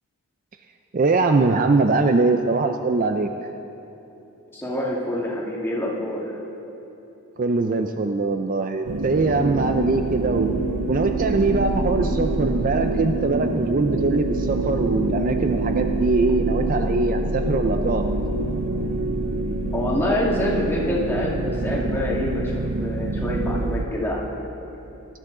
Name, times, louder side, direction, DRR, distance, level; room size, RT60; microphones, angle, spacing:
voice 1, 0.9-3.3 7.4-10.5 10.9-18.1, right 3 dB, 35° right, 6 dB, 0.4 m, -22 dB
voice 2, 4.5-6.4 19.7-24.2, left 1 dB, 10° left, -4 dB, 1.9 m, -26 dB
sound 1, 8.8-23.9, right 1 dB, 85° right, 0.7 m, -26 dB
sound 2, 9.0-16.6, right 4 dB, 60° right, 1.5 m, -30 dB
19.0 x 12.0 x 3.8 m, 2.9 s
head